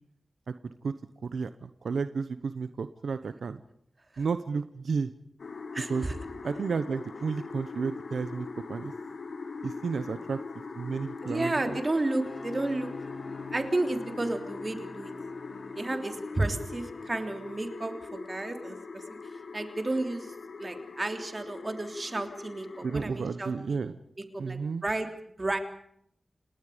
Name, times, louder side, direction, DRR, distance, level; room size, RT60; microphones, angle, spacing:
voice 1, 1.2-3.6 4.2-5.1 5.9-6.1 6.4-8.9 9.6-10.4 10.7-11.8 22.8-23.9 24.4-24.8, right 5 dB, 90° right, 11 dB, 0.9 m, -32 dB
sound 1, 5.4-23.0, left 4 dB, 75° left, 2.1 m, -41 dB
voice 2, 5.7-6.2 11.2-12.9 13.5-15.1 15.7-19.2 19.5-23.8 24.3-25.1 25.4-25.6, right 2 dB, 35° right, 6 dB, 3.3 m, -32 dB
sound 2, 11.7-17.5, left 3 dB, 45° left, 4.2 m, -48 dB
29.5 x 19.0 x 5.1 m, 0.70 s
cardioid pair, 60°, 0 cm